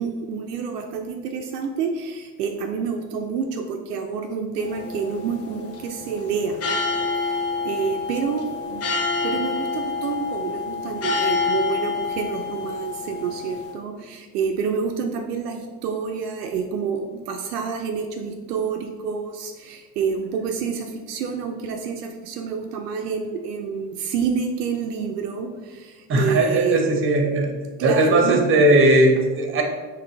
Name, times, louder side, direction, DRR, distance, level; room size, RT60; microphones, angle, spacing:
voice 1, 0.0-6.6 7.6-8.8 9.2-25.5 25.8-25.9 26.2-26.8 27.8-28.4, right 6 dB, 70° right, 3 dB, 0.6 m, -28 dB
sound 1, 4.6-13.7, left 4 dB, 30° left, 0.7 m, -28 dB
voice 2, 26.1-27.5 27.8-29.6, right 1 dB, 25° right, 3 dB, 0.9 m, -18 dB
3.9 x 3.0 x 4.5 m, 1.3 s
figure-of-eight pair, 65°, 49 cm